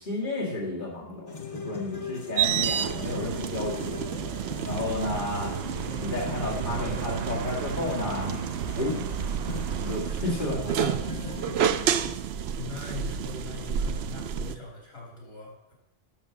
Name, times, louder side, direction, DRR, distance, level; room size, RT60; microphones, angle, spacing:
voice 1, 0.0-4.0 4.6-5.5 6.0-8.4 8.8-9.0 9.8-11.3, left 2 dB, 55° left, -5 dB, 2.3 m, -32 dB
sound 1, 1.3-12.1, left 4 dB, 35° left, 0.9 m, -39 dB
sound 2, 2.4-14.6, right 9 dB, 80° right, 0.8 m, -30 dB
sound 3, 4.7-10.0, right 8 dB, 55° right, 0.5 m, -39 dB
voice 2, 12.6-15.7, left 4 dB, 80° left, -3 dB, 3.5 m, -40 dB
8.9 x 6.6 x 7.0 m, 0.86 s
omnidirectional pair, 1.0 m